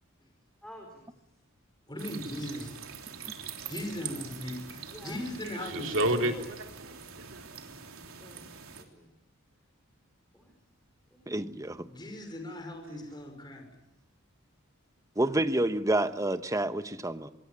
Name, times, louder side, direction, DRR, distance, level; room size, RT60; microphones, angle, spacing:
voice 1, 0.6-1.0 4.9-5.2 5.9-6.5 8.2-9.2 10.3-10.6 11.1-11.6, equal, 5° left, 4.4 m, -51 dB
voice 2, 1.9-2.8 3.7-6.3 11.9-13.7, left 1 dB, 20° left, 5.7 m, -39 dB
sound 1, 2.0-8.8, right 7 dB, 80° right, 3.4 m, -44 dB
voice 3, 5.4-7.8 12.8-13.1, right 1 dB, 65° right, 3.3 m, -32 dB
voice 4, 11.3-11.9 15.2-17.3, right 1 dB, 15° right, 1.1 m, -28 dB
25.0 x 22.5 x 8.8 m
head